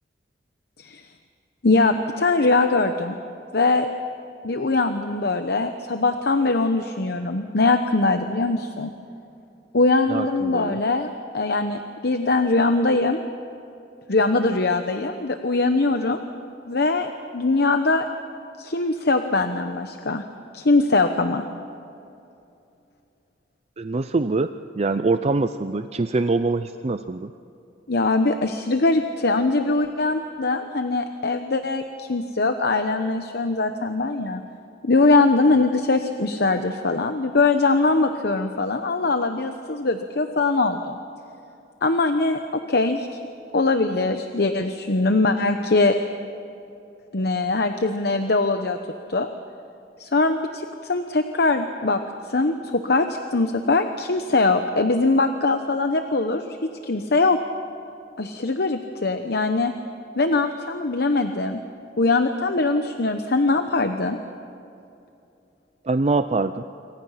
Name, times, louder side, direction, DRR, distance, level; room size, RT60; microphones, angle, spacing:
voice 1, 1.6-3.2 3.5-3.9 4.4-8.9 9.7-13.2 14.1-16.2 16.7-18.1 18.6-20.2 20.5-21.4 27.9-34.4 34.8-41.0 41.8-43.2 43.5-46.0 47.1-48.8 49.1-49.3 50.0-52.0 52.3-57.4 58.2-59.7 60.2-61.6 62.0-64.2, left 3 dB, 60° left, 7 dB, 0.9 m, -22 dB
voice 2, 10.1-10.8 23.8-24.5 24.8-27.3 65.9-66.6, right 3 dB, 35° right, 10 dB, 0.5 m, -24 dB
27.0 x 24.5 x 5.8 m, 2.7 s
head